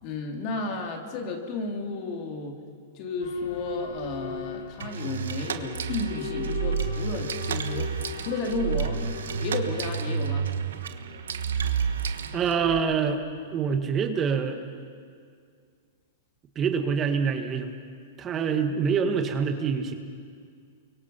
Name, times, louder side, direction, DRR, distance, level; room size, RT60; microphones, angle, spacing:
voice 1, 0.0-2.6 2.9-7.9 8.2-9.0 9.4-10.5, left 3 dB, 45° left, 3 dB, 3.2 m, -32 dB
Boat Water vehicle / Alarm, 3.2-13.9, left 5 dB, 80° left, 2.3 m, -40 dB
sound 1, 4.8-12.8, right 6 dB, 90° right, 1.3 m, -30 dB
voice 2, 12.3-13.2 13.5-14.6 16.5-17.7 18.2-20.0, right 6 dB, 25° right, 6 dB, 1.6 m, -25 dB
29.0 x 24.0 x 5.8 m, 2.1 s
hypercardioid pair, 130°, 0 cm